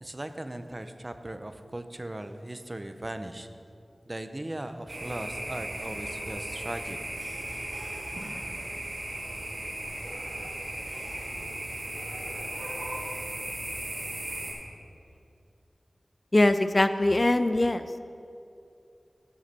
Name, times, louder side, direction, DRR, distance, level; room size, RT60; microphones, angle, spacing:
voice 1, 0.0-3.5 4.1-7.0, right 1 dB, 30° right, 8 dB, 0.6 m, -38 dB
sound 1, 4.9-14.5, right 1 dB, 90° right, 2.3 m, -36 dB
voice 2, 16.3-17.8, left 2 dB, 35° left, 11 dB, 0.3 m, -22 dB
14.5 x 6.4 x 4.2 m, 2.6 s
wide cardioid pair, 80°, 0 cm